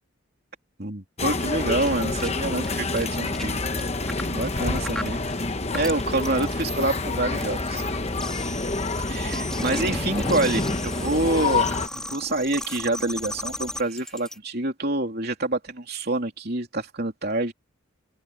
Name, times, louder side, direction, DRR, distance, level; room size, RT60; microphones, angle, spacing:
voice 1, 0.8-3.6 4.3-5.2 5.7-7.8 9.1-17.5, right 2 dB, 45° right, 3.3 m, -27 dB
sound 1, 1.2-11.9, left 3 dB, 30° left, 1.0 m, -27 dB
sound 2, 1.7-14.4, left 1 dB, 5° left, 3.3 m, -36 dB
head